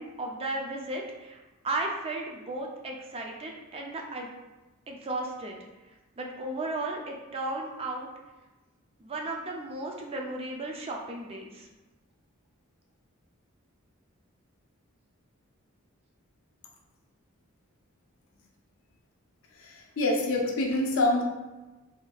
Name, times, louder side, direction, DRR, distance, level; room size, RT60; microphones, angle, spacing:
voice 1, 0.0-1.4 1.6-4.3 4.9-5.6 6.2-8.1 9.0-11.7, right 2 dB, 25° right, 0 dB, 0.4 m, -35 dB
voice 2, 19.6-21.2, left 2 dB, 65° left, 1 dB, 0.5 m, -26 dB
3.4 x 2.6 x 2.3 m, 1.1 s
head